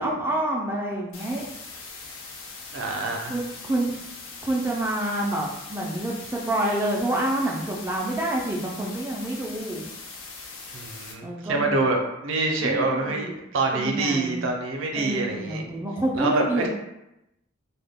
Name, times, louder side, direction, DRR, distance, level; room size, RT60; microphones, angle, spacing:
voice 1, 0.0-1.5 3.3-3.9 4.4-9.8 11.2-11.8 12.6-13.4 13.7-14.4 14.9-16.7, right 1 dB, 10° right, -3 dB, 0.3 m, -28 dB
sound 1, 1.1-11.1, left 4 dB, 90° left, 0.5 m, -41 dB
voice 2, 2.7-3.3 10.7-15.6 16.2-16.7, right 3 dB, 75° right, 2 dB, 0.5 m, -26 dB
2.1 x 2.1 x 3.4 m, 0.88 s
head